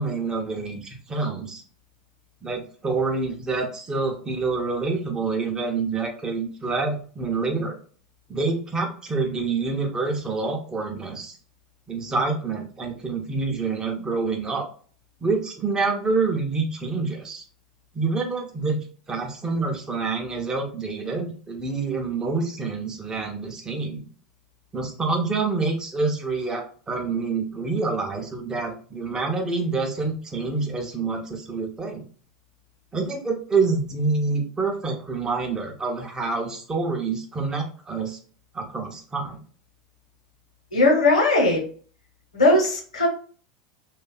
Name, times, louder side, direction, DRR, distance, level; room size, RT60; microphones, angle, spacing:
voice 1, 0.0-1.6 2.4-7.7 8.3-11.3 11.9-14.7 15.2-17.4 17.9-24.0 24.7-32.0 32.9-38.2 38.5-39.4, right 4 dB, 20° right, 1 dB, 0.6 m, -27 dB
voice 2, 40.7-41.7 42.3-43.1, left 2 dB, 80° left, 1 dB, 0.9 m, -19 dB
2.6 x 2.3 x 2.2 m, 0.42 s
figure-of-eight pair, 85°, 4 cm